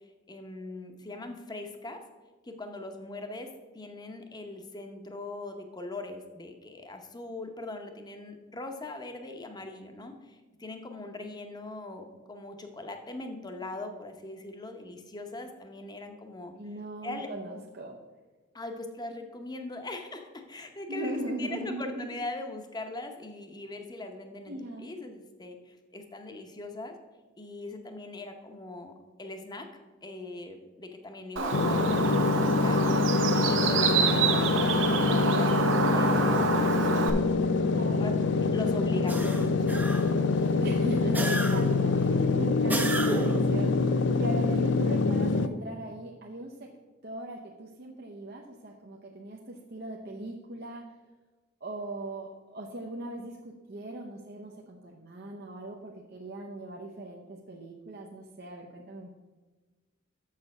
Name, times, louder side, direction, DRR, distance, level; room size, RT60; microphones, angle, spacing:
voice 1, 0.3-2.0 2.4-3.5 3.7-16.5 17.0-17.3 18.5-27.0 27.4-28.9 29.2-29.7 30.0-33.0 33.3-37.5 38.0-38.1 38.4-39.7, left 2 dB, 20° left, 5 dB, 0.8 m, -40 dB
voice 2, 16.6-18.0 20.9-22.1 24.5-24.9 37.7-38.1 40.6-46.7 47.0-50.9 51.6-59.1, right 1 dB, 55° right, 0 dB, 0.7 m, -39 dB
Bird, 31.4-37.1, right 4 dB, 80° right, 0.9 m, -27 dB
sound 1, 31.5-45.5, left 4 dB, 65° left, 0.4 m, -25 dB
sound 2, 39.1-40.3 41.1-41.9 42.7-43.5, right 2 dB, 10° right, 0.6 m, -32 dB
6.8 x 6.5 x 5.3 m, 1.3 s
head